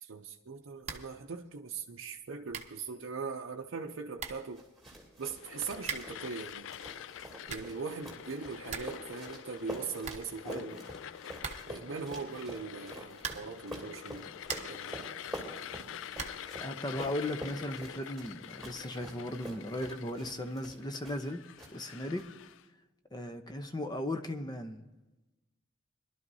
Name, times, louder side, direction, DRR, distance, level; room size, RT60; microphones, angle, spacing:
voice 1, 0.0-4.6 5.2-6.7 7.5-10.8 11.7-14.3 14.7-15.5, right 5 dB, 75° right, 0.6 m, -41 dB
sound 1, 0.8-1.2 1.5-1.6 2.2-2.3 2.5-2.8 3.8-3.9 4.2-4.5 5.8-6.3 7.2-7.8 8.2-8.3 8.5-9.0 9.3-9.4 9.7-9.8 10.0-10.8 11.4-11.9 13.2-13.7 14.1-14.9 16.1-16.5, right 6 dB, 35° right, 0.9 m, -41 dB
sound 2, 4.5-21.3 21.6-22.2, equal, ahead, 2.9 m, -47 dB
sound 3, 5.3-22.6, left 9 dB, 70° left, 0.3 m, -47 dB
voice 2, 10.5-10.8 16.6-21.4 21.7-22.3 23.1-24.9, left 1 dB, 20° left, 0.7 m, -37 dB
22.0 x 12.0 x 2.7 m
head